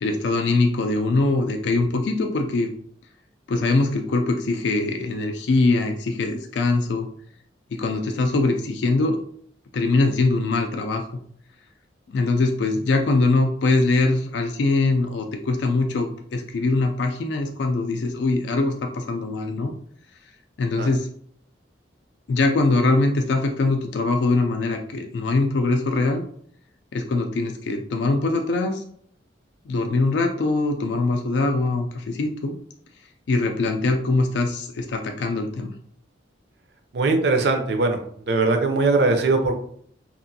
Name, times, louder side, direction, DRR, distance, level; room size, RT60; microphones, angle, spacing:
voice 1, 0.0-2.7 3.5-7.1 7.7-9.2 9.7-11.0 12.1-19.7 20.6-21.1 22.3-26.2 26.9-28.8 29.7-32.6 33.3-35.7, left 3 dB, 65° left, 3 dB, 0.3 m, -22 dB
voice 2, 36.9-38.0 38.3-39.6, right 3 dB, 65° right, 5 dB, 0.5 m, -20 dB
2.9 x 2.5 x 2.6 m, 0.62 s
head